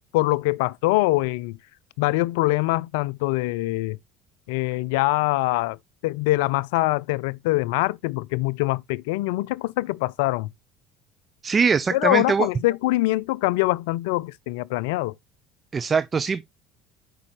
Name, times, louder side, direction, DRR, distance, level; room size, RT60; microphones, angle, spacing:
voice 1, 0.1-1.6 2.0-4.0 4.5-5.8 6.0-10.5 11.9-15.1, left 19 dB, 75° left, 0.4 m, -23 dB
voice 2, 11.4-12.5 15.7-16.4, right 5 dB, 30° right, 0.5 m, -22 dB
8.7 x 5.4 x 2.9 m
hypercardioid pair, 75°, 0 cm